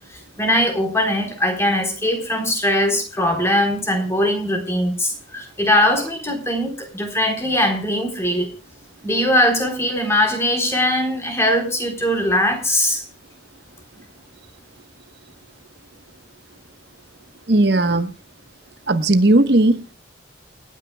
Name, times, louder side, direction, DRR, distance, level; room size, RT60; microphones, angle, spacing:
voice 1, 0.4-8.5 9.0-13.0, left 1 dB, 15° left, 4 dB, 3.9 m, -20 dB
voice 2, 17.5-18.1 18.9-19.8, right 2 dB, 60° right, 9 dB, 1.2 m, -16 dB
29.0 x 9.8 x 2.3 m, 0.31 s
head